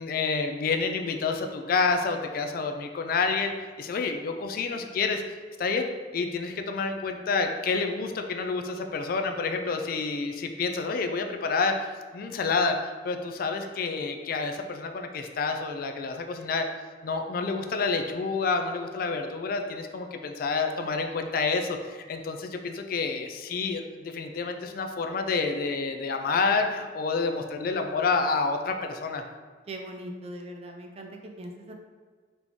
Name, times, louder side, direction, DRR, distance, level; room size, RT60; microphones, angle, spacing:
voice 1, 0.0-3.5 3.8-5.2 5.6-5.9 6.1-12.8 13.0-16.7 17.0-29.2, left 4 dB, 50° left, 5 dB, 0.3 m, -28 dB
voice 2, 29.7-31.7, right 1 dB, 35° right, 2 dB, 0.4 m, -41 dB
4.0 x 3.5 x 3.0 m, 1.5 s
head